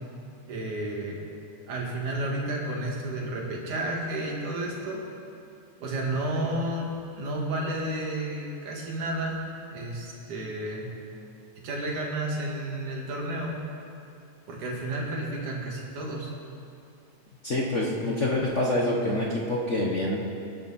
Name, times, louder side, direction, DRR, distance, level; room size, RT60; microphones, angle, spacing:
voice 1, 0.5-1.2 1.7-5.1 5.8-9.4 9.7-10.9 11.6-13.6 14.5-16.3, right 1 dB, 75° right, -2 dB, 3.8 m, -31 dB
voice 2, 17.4-20.2, left 1 dB, 75° left, -3 dB, 0.6 m, -26 dB
23.0 x 12.0 x 4.3 m, 2.5 s
omnidirectional pair, 3.5 m